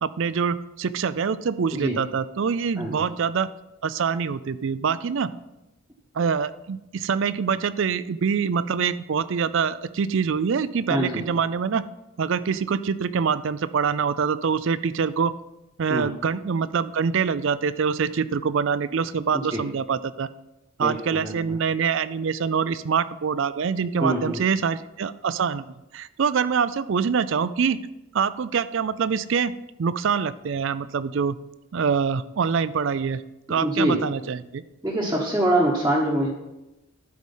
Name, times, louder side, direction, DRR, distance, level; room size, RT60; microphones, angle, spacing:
voice 1, 0.0-3.5 3.8-5.3 6.1-11.8 12.2-15.3 15.8-20.3 20.8-27.8 28.1-29.5 29.8-31.4 31.7-33.2 33.5-34.6, right 6 dB, 60° right, 16 dB, 0.4 m, -25 dB
voice 2, 2.8-3.1 10.9-11.2 15.9-16.1 19.3-19.6 20.8-21.6 24.0-24.4 33.6-34.0 34.8-36.3, right 1 dB, 10° right, -5 dB, 1.0 m, -24 dB
11.5 x 4.8 x 5.5 m, 0.94 s
head